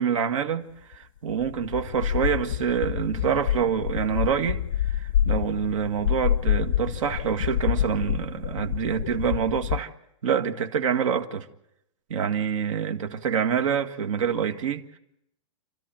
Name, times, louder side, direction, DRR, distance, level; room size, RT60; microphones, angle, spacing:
voice 1, 0.0-9.9 10.2-11.5 12.1-14.8, right 7 dB, 75° right, 1.9 m, -26 dB
sound 1, 0.9-1.0 1.3-9.8, left 11 dB, 70° left, 0.8 m, -27 dB
28.5 x 13.0 x 9.0 m
supercardioid pair, 170°, 17 cm